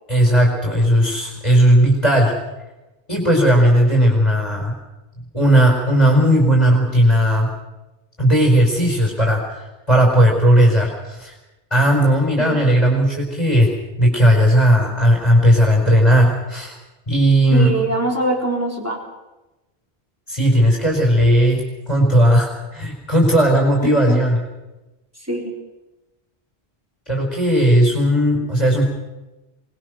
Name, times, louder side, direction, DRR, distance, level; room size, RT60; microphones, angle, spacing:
voice 1, 0.1-2.3 3.1-4.7 5.3-7.5 8.2-11.3 11.7-13.7 14.0-16.8 17.1-17.7 20.3-24.4 27.1-28.9, equal, 25° left, -1 dB, 4.8 m, -16 dB
voice 2, 17.5-19.0 23.8-24.2 25.3-25.6, right 1 dB, 15° right, 0 dB, 3.8 m, -23 dB
24.0 x 20.0 x 6.4 m, 1.0 s
omnidirectional pair, 1.1 m